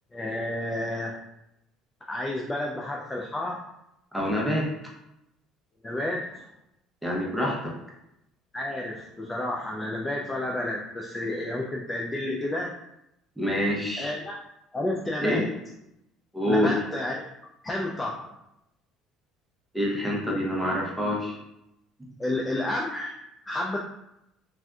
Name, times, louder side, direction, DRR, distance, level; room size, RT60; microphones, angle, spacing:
voice 1, 0.1-1.2 2.1-3.7 5.8-6.5 8.5-12.7 14.0-14.4 14.7-15.5 16.5-17.3 17.6-18.3 22.2-23.2 23.5-23.8, left 1 dB, 15° left, -2 dB, 0.3 m, -31 dB
voice 2, 4.1-4.7 7.0-7.7 13.4-14.1 15.2-15.4 16.3-16.7 19.7-21.4, equal, 5° right, -3 dB, 0.8 m, -26 dB
3.4 x 2.5 x 2.3 m, 0.83 s
cardioid pair, 130°, 0 cm